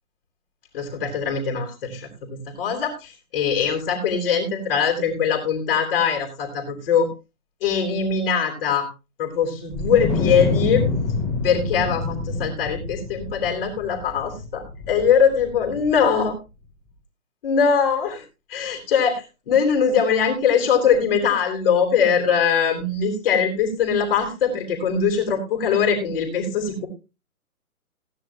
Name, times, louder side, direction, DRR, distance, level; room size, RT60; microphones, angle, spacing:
voice 1, 0.7-7.1 7.6-8.9 9.2-10.8 11.4-16.3 17.4-18.2 18.5-26.9, left 6 dB, 40° left, 2 dB, 3.6 m, -22 dB
Wind, 9.7-16.2, left 3 dB, 10° left, 3.2 m, -27 dB
16.0 x 10.0 x 2.8 m, 0.28 s
figure-of-eight pair, 135°, 44 cm